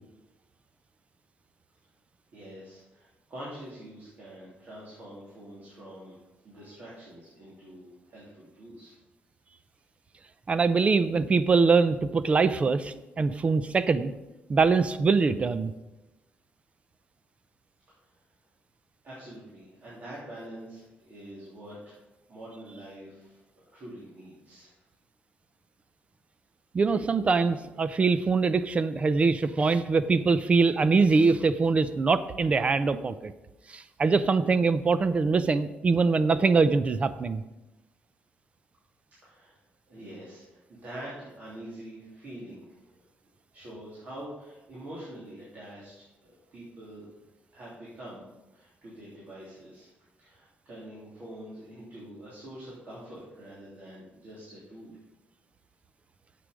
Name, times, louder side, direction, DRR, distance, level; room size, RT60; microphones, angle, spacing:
voice 1, 2.3-6.1 6.4-8.9 19.0-22.0 22.3-23.4 23.7-24.7 39.2-39.6 39.9-42.8 43.5-47.1 47.5-48.2 48.5-49.9 50.2-55.0, right 1 dB, 50° right, -8 dB, 3.1 m, -45 dB
voice 2, 10.5-14.1 14.5-15.7 26.7-33.3 33.7-37.4, right 4 dB, 30° right, 14 dB, 0.5 m, -23 dB
8.2 x 7.7 x 5.1 m, 1.0 s
cardioid pair, 125°, 4 cm